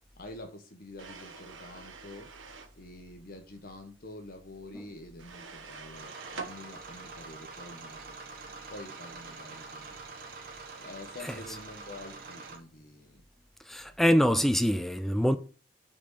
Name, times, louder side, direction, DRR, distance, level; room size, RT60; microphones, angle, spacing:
voice 1, 0.2-2.3 2.8-8.2 8.7-10.0 10.8-13.2, left 1 dB, 50° left, 1.1 m, -47 dB
sound 1, 1.0-2.8 5.2-6.5, right 4 dB, 85° right, 1.1 m, -45 dB
sound 2, 5.9-12.6, right 4 dB, 50° right, 1.5 m, -45 dB
voice 2, 13.7-15.4, equal, ahead, 0.4 m, -24 dB
6.0 x 4.3 x 6.4 m
head